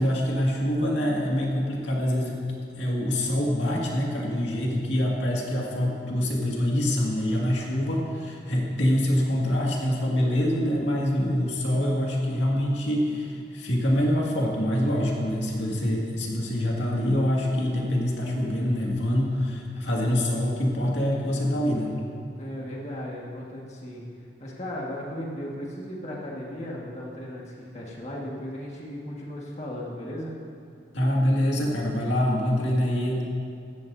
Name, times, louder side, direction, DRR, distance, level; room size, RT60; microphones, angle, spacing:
voice 1, 0.0-2.4 2.8-21.9 30.9-33.2, left 1 dB, 85° left, -3 dB, 2.1 m, -25 dB
voice 2, 22.4-24.1 24.4-30.3, equal, 40° left, -3 dB, 1.6 m, -36 dB
16.5 x 14.0 x 2.7 m, 2.3 s
head